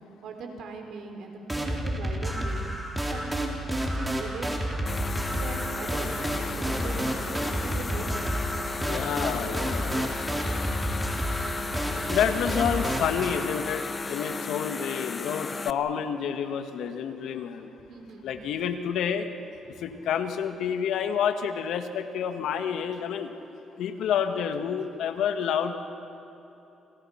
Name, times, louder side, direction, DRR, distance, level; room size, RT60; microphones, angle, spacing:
voice 1, 0.2-2.6 3.1-4.8 5.3-8.4 11.4-11.8 17.9-18.3 19.7-19.8, right 4 dB, 70° right, 3 dB, 4.4 m, -40 dB
sound 1, 1.5-13.6, equal, 10° right, 4.3 m, -30 dB
sound 2, 4.9-15.7, left 4 dB, 30° left, 0.9 m, -35 dB
voice 2, 8.8-10.3 12.1-17.7 18.2-19.3 19.8-23.3 23.8-25.7, left 8 dB, 80° left, 7 dB, 1.8 m, -29 dB
30.0 x 27.5 x 5.9 m, 3.0 s
cardioid pair, 90°, 0 cm